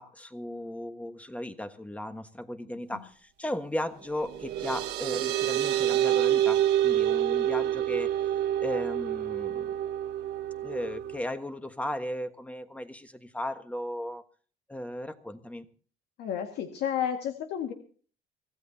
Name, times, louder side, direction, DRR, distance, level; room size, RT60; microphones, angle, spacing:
voice 1, 0.0-8.1 8.6-9.7 10.6-14.2 14.7-15.7, left 1 dB, 10° left, 8 dB, 1.4 m, -36 dB
sound 1, 4.0-11.2, right 12 dB, 90° right, 1.6 m, -27 dB
Wind instrument woodwind instrument, 5.0-12.3, left 5 dB, 45° left, 2.8 m, -57 dB
voice 2, 16.2-17.7, left 9 dB, 75° left, 4 dB, 1.9 m, -31 dB
24.5 x 16.0 x 2.8 m, 0.42 s
cardioid pair, 110°, 17 cm